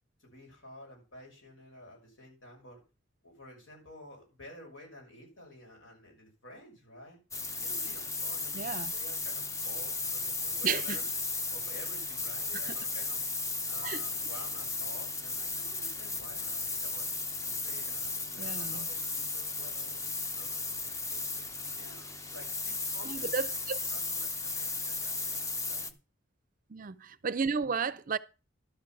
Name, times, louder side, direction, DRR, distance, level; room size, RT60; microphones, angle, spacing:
voice 1, 0.2-2.8 3.2-7.2 7.6-11.1 11.5-13.2 13.7-17.1 17.4-20.0 20.3-23.3 23.9-25.9, left 1 dB, 75° left, 6.0 m, -51 dB
sound 1, 7.3-25.9, left 3 dB, 15° left, 0.7 m, -35 dB
voice 2, 8.5-8.9 10.6-11.0 12.6-12.8 13.8-14.0 18.4-18.9 23.0-23.8 26.7-28.2, right 5 dB, 45° right, 0.5 m, -33 dB
12.0 x 6.2 x 5.9 m
head